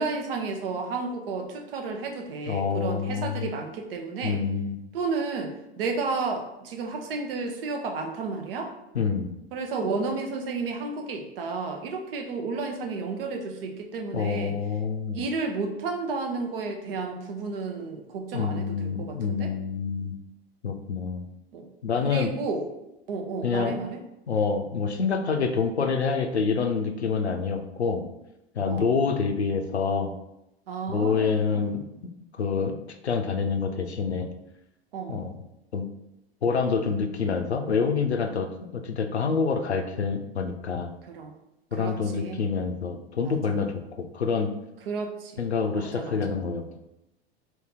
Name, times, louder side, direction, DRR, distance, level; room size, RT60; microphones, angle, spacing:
voice 1, 0.0-4.4 4.9-8.7 9.5-14.5 15.1-19.5 21.5-21.6 22.0-22.6 23.1-24.0 28.6-28.9 30.7-31.6 34.9-35.2 41.1-41.3 41.8-42.4 43.2-43.4 44.9-45.4 45.7-46.2, right 4 dB, 60° right, 3 dB, 0.8 m, -32 dB
voice 2, 2.5-3.5 4.2-4.8 8.9-9.3 14.1-15.2 18.3-20.2 20.6-21.3 21.8-22.3 23.4-23.8 24.3-28.0 28.5-30.1 30.9-31.8 32.3-32.8 33.0-34.3 35.1-35.3 35.7-35.9 36.4-38.5 38.7-40.9 41.7-44.5 45.4-46.8, left 5 dB, 90° left, 6 dB, 0.5 m, -27 dB
2.8 x 2.8 x 3.6 m, 0.89 s
figure-of-eight pair, 85°, 32 cm